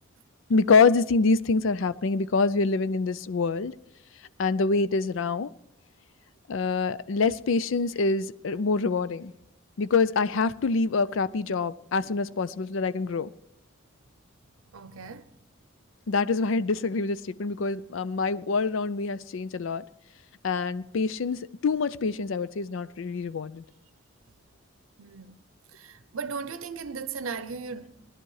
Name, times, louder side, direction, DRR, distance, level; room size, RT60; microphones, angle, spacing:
voice 1, 0.5-3.7 4.4-5.5 6.5-9.3 9.8-13.3 16.1-19.8 20.4-23.6, left 4 dB, 70° left, 0.5 m, -25 dB
voice 2, 14.7-15.3 25.0-25.4 25.7-28.1, right 5 dB, 90° right, 0.7 m, -37 dB
17.5 x 11.5 x 4.7 m
head